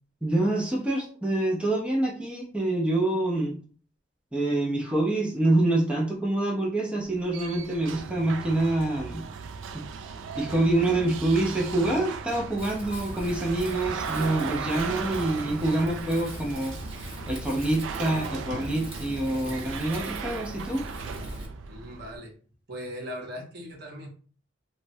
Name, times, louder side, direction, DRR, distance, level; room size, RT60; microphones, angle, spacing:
voice 1, 0.2-3.6 4.3-9.3 9.7-9.8 10.4-16.8 17.3-20.8, right 2 dB, 5° right, -2 dB, 0.4 m, -26 dB
sound 1, 7.0-22.2, right 5 dB, 80° right, 0.3 m, -37 dB
Wind, 12.6-21.5, equal, 30° right, 0.9 m, -41 dB
voice 2, 21.7-22.3 22.7-24.1, equal, 60° right, 0 dB, 0.8 m, -39 dB
3.0 x 2.1 x 2.6 m, 0.41 s
head